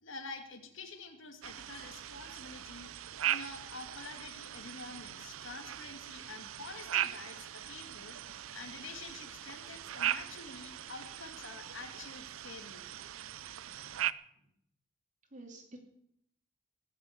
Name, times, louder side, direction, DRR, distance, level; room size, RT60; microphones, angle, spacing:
voice 1, 0.0-12.9, left 3 dB, 70° left, 5 dB, 2.5 m, -48 dB
sound 1, 1.4-14.1, right 11 dB, 85° right, 0.6 m, -39 dB
voice 2, 13.7-14.1 15.3-15.8, right 2 dB, 40° right, 2 dB, 2.7 m, -51 dB
19.5 x 7.4 x 8.1 m, 0.73 s
head